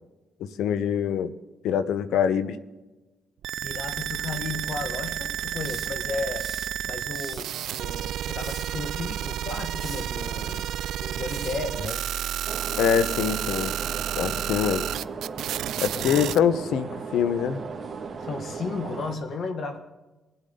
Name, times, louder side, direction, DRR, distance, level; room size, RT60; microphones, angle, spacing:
voice 1, 0.4-1.3 1.6-2.6 12.8-13.7 14.2-14.9 15.8-17.6, left 8 dB, 80° left, 13 dB, 0.9 m, -24 dB
sound 1, 3.4-16.4, right 11 dB, 80° right, 0.4 m, -31 dB
voice 2, 3.6-6.5 6.8-10.7 11.0-12.0 16.0-16.2 18.2-19.8, left 4 dB, 55° left, 7 dB, 1.3 m, -34 dB
sound 2, 5.6-6.7 7.1-7.5 8.2-8.8 9.8-10.1 11.3-11.7, right 3 dB, 20° right, 1.6 m, -43 dB
sound 3, 12.5-19.2, right 5 dB, 35° right, 1.9 m, -36 dB
22.0 x 7.9 x 3.9 m, 1.1 s
cardioid pair, 90°, 0 cm